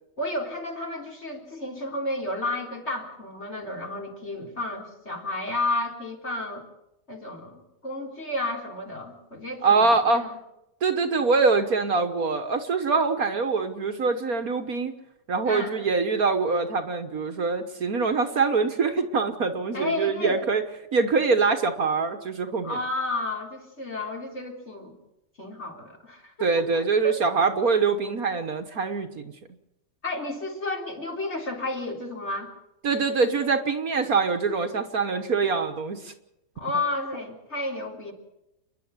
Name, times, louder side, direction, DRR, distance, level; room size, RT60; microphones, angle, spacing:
voice 1, 0.2-6.7 7.1-10.4 15.4-15.8 19.7-20.4 22.6-24.9 25.4-27.2 30.0-32.5 36.6-38.1, left 2 dB, 40° left, 1 dB, 4.1 m, -32 dB
voice 2, 9.6-10.2 10.8-14.9 15.3-20.6 20.9-22.8 26.4-29.3 32.8-36.1, right 4 dB, 55° right, 8 dB, 1.7 m, -24 dB
29.5 x 11.0 x 9.6 m, 0.88 s
omnidirectional pair, 1.9 m